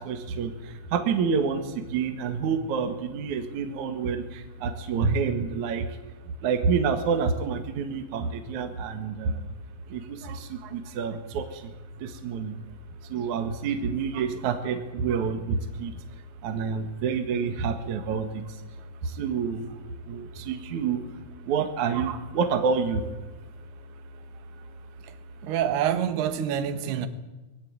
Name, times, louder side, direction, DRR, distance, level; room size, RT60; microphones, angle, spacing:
voice 1, 0.0-5.9 6.4-9.5 9.9-11.7 12.0-12.6 13.1-15.9 16.4-18.6 19.0-21.0 21.5-23.0, right 5 dB, 55° right, 2.5 m, -28 dB
voice 2, 25.4-27.1, right 9 dB, 75° right, 3.3 m, -26 dB
21.5 x 16.0 x 9.5 m
omnidirectional pair, 4.8 m